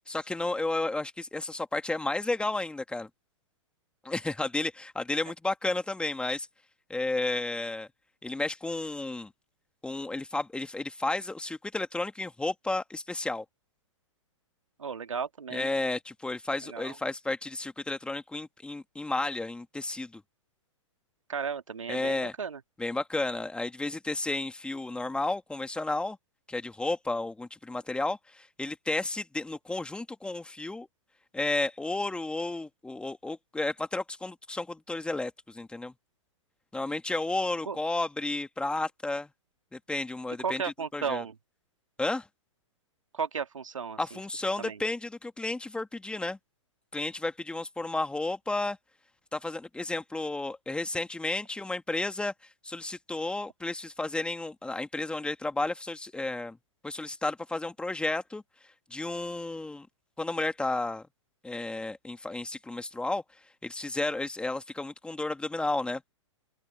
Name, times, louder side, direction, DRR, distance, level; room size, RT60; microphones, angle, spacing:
voice 1, 0.1-3.1 4.0-6.5 6.9-7.9 8.2-9.3 9.8-13.4 15.5-20.2 21.9-22.3 22.8-26.2 26.5-30.9 31.3-35.9 36.7-39.3 39.7-41.2 42.0-42.3 44.0-46.4 46.9-48.8 49.3-52.3 52.6-56.6 56.8-58.4 58.9-59.9 60.2-61.0 61.4-63.2 63.6-66.0, left 2 dB, 5° left, 2.1 m, -32 dB
voice 2, 14.8-15.7 16.6-17.0 21.3-22.6 37.7-37.8 40.4-41.4 43.1-44.2 44.6-44.8, right 6 dB, 80° right, 1.9 m, -34 dB
open air
figure-of-eight pair, 110°, 16 cm